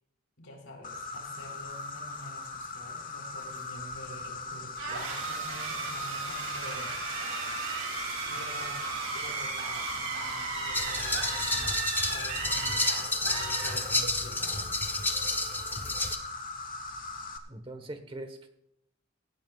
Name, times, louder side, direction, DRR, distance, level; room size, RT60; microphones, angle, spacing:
voice 1, 0.4-6.9 8.2-8.8 9.1-11.8 12.1-14.6, equal, 85° left, 2 dB, 4.3 m, -47 dB
Insect, 0.8-17.4, left 3 dB, 40° left, 1.3 m, -40 dB
sound 1, 4.8-14.3, right 4 dB, 80° right, 3.1 m, -35 dB
sound 2, 10.7-16.2, left 2 dB, 10° left, 1.0 m, -30 dB
voice 2, 17.5-18.5, right 1 dB, 25° right, 7 dB, 1.4 m, -41 dB
17.5 x 15.5 x 2.5 m, 0.78 s
head